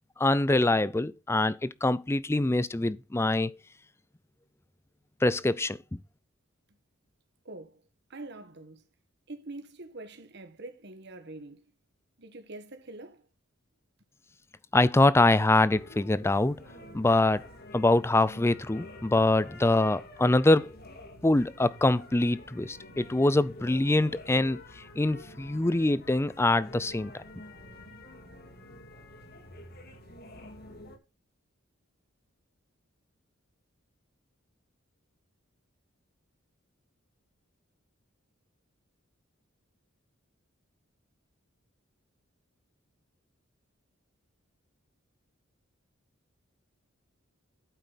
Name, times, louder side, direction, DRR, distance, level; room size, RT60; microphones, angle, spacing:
voice 1, 0.2-3.6 5.2-6.0 14.7-16.6 16.9-17.4 17.7-20.8 21.2-27.1, left 2 dB, 10° left, 0.4 m, -24 dB
voice 2, 7.4-7.8 8.1-8.8 9.3-11.7 12.2-13.3, right 2 dB, 55° right, 1.6 m, -44 dB
sound 1, 15.7-31.0, left 1 dB, 50° left, 2.1 m, -48 dB
9.0 x 8.1 x 4.1 m
head